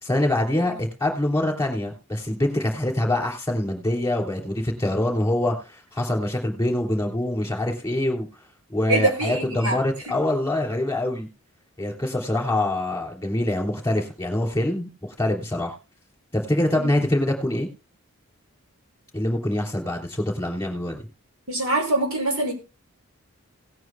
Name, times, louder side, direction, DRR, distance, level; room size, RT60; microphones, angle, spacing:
voice 1, 0.0-8.3 8.7-11.3 11.8-15.7 16.3-17.7 19.1-21.0, left 1 dB, 10° left, 2 dB, 3.1 m, -25 dB
voice 2, 8.9-9.8 10.1-10.2 16.7-17.0 21.5-22.5, right 2 dB, 80° right, 2 dB, 5.4 m, -24 dB
18.5 x 9.3 x 2.2 m, 0.32 s
head